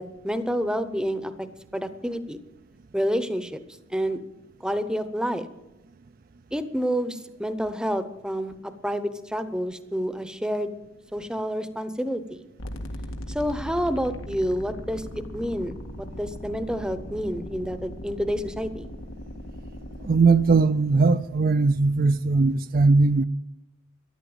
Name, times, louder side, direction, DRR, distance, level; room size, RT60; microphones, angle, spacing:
voice 1, 0.0-1.5 1.7-2.4 2.9-3.6 3.9-4.2 4.6-5.5 6.5-10.8 11.1-12.5 13.3-15.0 15.3-18.9, equal, 5° right, 0.8 m, -29 dB
sound 1, 12.6-20.6, equal, 85° left, 1.9 m, -38 dB
voice 2, 20.0-23.2, right 3 dB, 45° right, 0.5 m, -19 dB
13.5 x 11.0 x 7.9 m
head